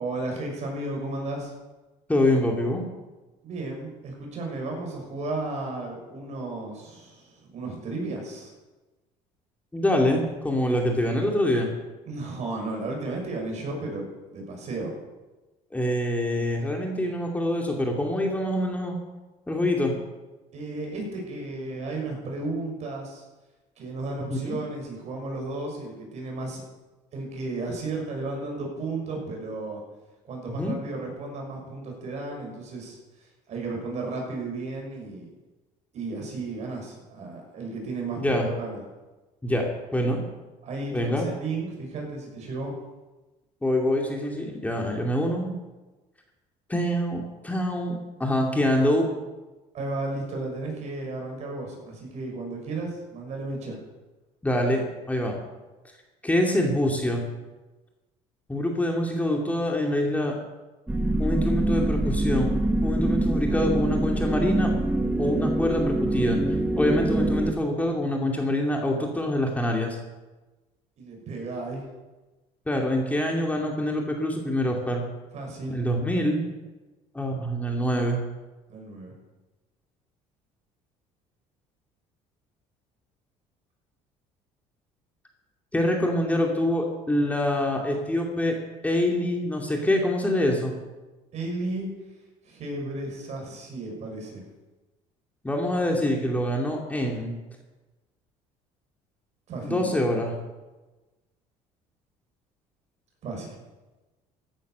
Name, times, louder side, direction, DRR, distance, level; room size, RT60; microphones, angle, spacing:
voice 1, 0.0-1.5 3.4-8.5 12.0-14.9 20.5-23.2 23.8-26.6 27.1-29.8 30.2-35.3 35.9-38.8 40.6-42.7 49.7-53.8 71.0-71.8 75.3-75.8 78.7-79.1 91.3-91.9 92.4-94.4 99.5-99.9 103.2-103.6, right 2 dB, 55° right, 0 dB, 6.4 m, -34 dB
voice 2, 2.1-2.8 9.7-11.7 15.7-19.0 19.5-19.9 24.3-24.6 30.6-30.8 38.2-38.5 39.4-40.2 40.9-41.3 43.6-45.5 46.7-49.1 54.4-55.4 56.2-57.2 58.5-60.4 61.2-64.7 65.2-66.4 66.8-70.0 72.7-75.0 75.7-76.4 77.1-78.2 85.7-88.6 88.8-90.7 95.4-97.3 99.6-100.3, left 1 dB, 10° left, 0 dB, 2.5 m, -25 dB
sound 1, 60.9-67.5, right 1 dB, 10° right, 1.5 m, -25 dB
15.5 x 10.5 x 6.8 m, 1.2 s
cardioid pair, 110°, 14 cm